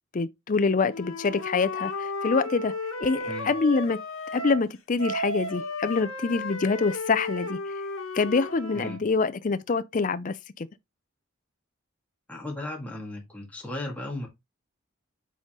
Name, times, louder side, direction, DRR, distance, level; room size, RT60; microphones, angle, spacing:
voice 1, 0.1-2.7 3.0-4.0 4.3-7.6 8.1-10.7, left 4 dB, 40° left, 0.5 m, -25 dB
Wind instrument woodwind instrument, 0.9-4.7 5.0-9.0, left 2 dB, 80° left, 1.5 m, -34 dB
voice 2, 12.3-14.3, left 1 dB, 5° left, 2.1 m, -36 dB
8.3 x 4.1 x 3.7 m
head